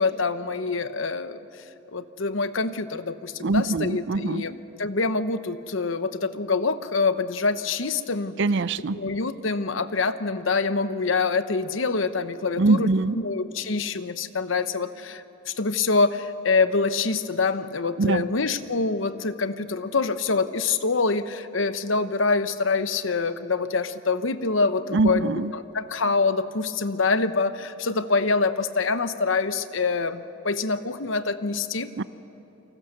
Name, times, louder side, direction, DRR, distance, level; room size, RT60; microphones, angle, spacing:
voice 1, 0.0-8.3 8.9-31.9, left 4 dB, 70° left, 11 dB, 1.0 m, -25 dB
voice 2, 3.4-4.4 8.4-9.0 12.6-13.2 18.0-18.2 24.9-25.5 32.0-32.1, right 3 dB, 65° right, 17 dB, 0.5 m, -23 dB
29.0 x 24.0 x 6.7 m, 3.0 s
head